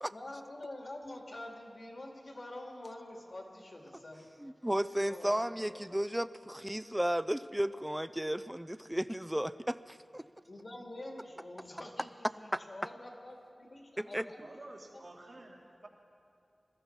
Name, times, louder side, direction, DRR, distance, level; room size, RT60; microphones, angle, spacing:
voice 1, 0.1-4.3 5.0-5.4 5.7-5.8 10.5-14.4 14.9-15.0, left 1 dB, 60° left, 1 dB, 2.2 m, -46 dB
voice 2, 4.4-10.3 12.5-12.6 14.0-14.3, equal, 10° right, 14 dB, 0.4 m, -34 dB
voice 3, 14.4-15.9, right 2 dB, 65° right, -1 dB, 2.4 m, -50 dB
21.0 x 14.0 x 4.5 m, 2.5 s
wide cardioid pair, 50°, 0 cm